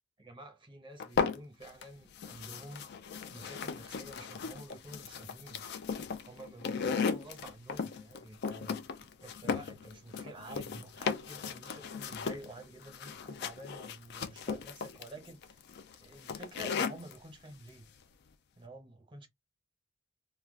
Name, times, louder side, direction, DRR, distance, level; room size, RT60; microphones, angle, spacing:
voice 1, 0.2-2.9 3.3-5.6 6.2-15.6 16.0-17.9 18.6-19.3, right 1 dB, 25° right, 0.8 m, -49 dB
sound 1, 1.0-1.8 2.2-17.2, left 5 dB, 55° left, 0.4 m, -36 dB
2.3 x 2.2 x 3.5 m
head